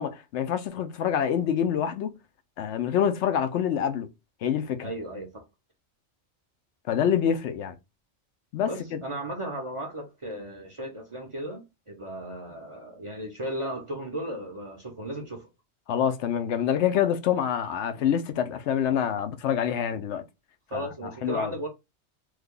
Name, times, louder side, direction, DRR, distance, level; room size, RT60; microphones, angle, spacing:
voice 1, 0.0-2.1 2.6-4.1 4.4-4.9 6.9-7.7 8.5-9.0 15.9-20.2 20.7-21.5, left 8 dB, 75° left, 0.9 m, -26 dB
voice 2, 4.8-5.4 8.7-15.5 20.7-21.7, right 1 dB, 35° right, 0.6 m, -35 dB
3.2 x 2.2 x 3.6 m
omnidirectional pair, 1.2 m